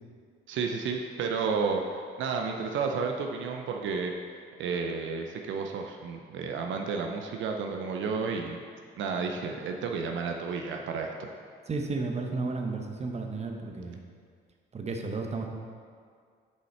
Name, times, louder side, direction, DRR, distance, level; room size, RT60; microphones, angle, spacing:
voice 1, 0.5-4.1 4.6-8.6 9.0-11.3, right 5 dB, 75° right, 3 dB, 0.6 m, -31 dB
voice 2, 11.7-14.0 14.7-15.5, right 3 dB, 35° right, 3 dB, 0.8 m, -33 dB
6.5 x 5.4 x 4.2 m, 2.1 s
cardioid pair, 90°, 20 cm